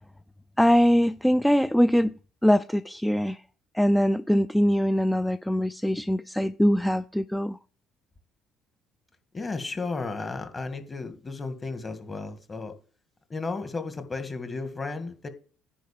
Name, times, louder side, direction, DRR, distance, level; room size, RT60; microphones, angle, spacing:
voice 1, 0.6-2.1 2.4-3.4 3.7-7.6, equal, 5° left, 0.5 m, -22 dB
voice 2, 9.3-12.7 13.3-15.3, left 3 dB, 30° left, 2.0 m, -34 dB
10.5 x 4.1 x 7.3 m
hypercardioid pair, 55°, 0 cm